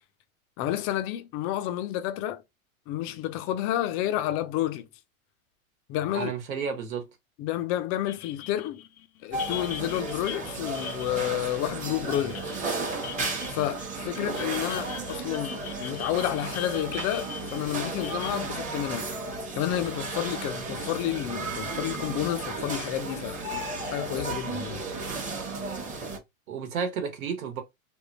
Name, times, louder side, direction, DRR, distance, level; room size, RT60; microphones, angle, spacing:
voice 1, 0.6-2.4 2.9-4.9 5.9-6.3 7.4-8.8 9.2-12.4 13.5-19.1 19.5-23.4 23.9-24.8 25.2-25.3, left 12 dB, 30° left, 0.5 m, -30 dB
voice 2, 6.1-7.1 14.4-14.5 26.5-27.6, right 6 dB, 75° right, 1.2 m, -32 dB
sound 1, 8.1-19.8, left 10 dB, 85° left, 0.6 m, -42 dB
sound 2, 9.3-26.2, right 3 dB, 15° right, 0.9 m, -34 dB
3.5 x 2.2 x 2.7 m
hypercardioid pair, 115°, 43 cm